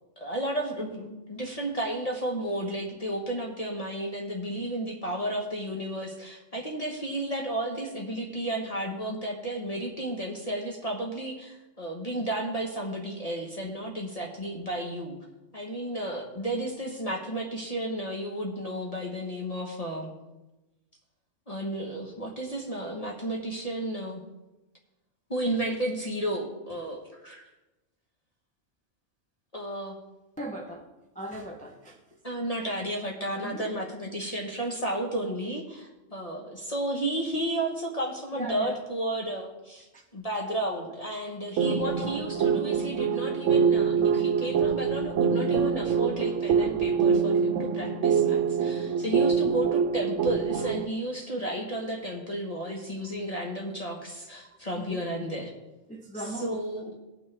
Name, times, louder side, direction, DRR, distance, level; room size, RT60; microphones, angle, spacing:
voice 1, 0.2-15.2 15.5-20.1 21.5-24.2 25.3-27.5 29.5-30.0 32.2-55.5 56.4-56.9, right 1 dB, 30° left, -1 dB, 1.3 m, -33 dB
voice 2, 30.4-30.9 31.1-32.0 33.4-33.7 38.3-38.8 39.9-40.0 40.4-40.5 41.9-42.0 54.7-55.0 55.9-56.6, right 1 dB, 5° left, 1 dB, 0.8 m, -38 dB
sound 1, 41.6-50.9, right 6 dB, 90° right, 0.9 m, -25 dB
18.0 x 6.2 x 3.5 m, 1.0 s
omnidirectional pair, 1.2 m